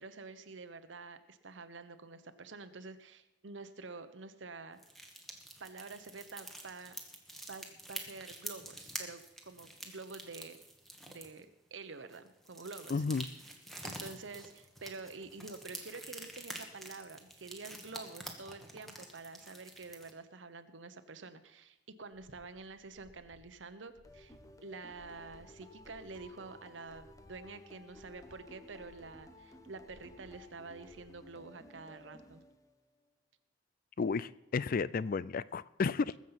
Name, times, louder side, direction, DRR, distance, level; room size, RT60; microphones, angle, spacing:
voice 1, 0.0-4.8 5.6-7.0 7.5-10.6 11.1-13.0 13.8-24.4 24.6-32.4, right 3 dB, 90° right, 10 dB, 1.0 m, -48 dB
sound 1, 4.8-11.4 12.1-20.1, right 1 dB, ahead, 1.6 m, -47 dB
voice 2, 12.9-13.3 34.0-36.2, left 4 dB, 50° left, 19 dB, 0.4 m, -32 dB
sound 2, 22.1-26.3 26.6-31.0, left 1 dB, 75° left, 4.1 m, -63 dB
sound 3, 24.0-33.0, left 1 dB, 20° left, 0.9 m, -56 dB
20.5 x 7.4 x 5.8 m, 0.93 s
head